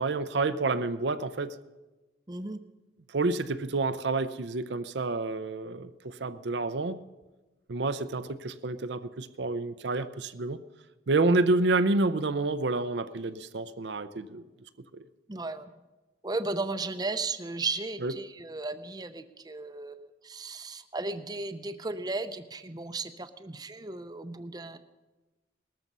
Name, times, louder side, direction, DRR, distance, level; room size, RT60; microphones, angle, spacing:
voice 1, 0.0-1.6 3.1-7.0 7.7-10.6 11.1-14.4 18.0-18.1, right 3 dB, 70° right, 0.6 m, -28 dB
voice 2, 2.3-2.6 15.3-15.7 16.2-24.8, right 3 dB, 20° right, 0.6 m, -35 dB
19.5 x 13.5 x 5.5 m
head